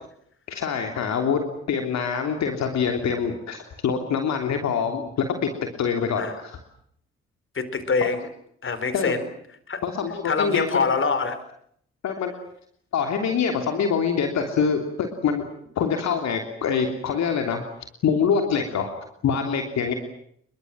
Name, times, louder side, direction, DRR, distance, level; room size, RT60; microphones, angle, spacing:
voice 1, 0.5-1.4 1.7-5.1 5.4-5.5 5.8-6.6 8.9-9.1 9.8-10.7 12.0-12.3 12.9-15.4 15.7-17.6 18.0-19.0 19.2-19.9, left 6 dB, 60° left, 4 dB, 3.2 m, -25 dB
voice 2, 7.5-8.3 8.6-9.3 9.7-9.8 10.2-11.4, left 4 dB, 40° left, 13 dB, 4.4 m, -25 dB
28.0 x 22.5 x 7.7 m, 0.67 s
hypercardioid pair, 45°, 30 cm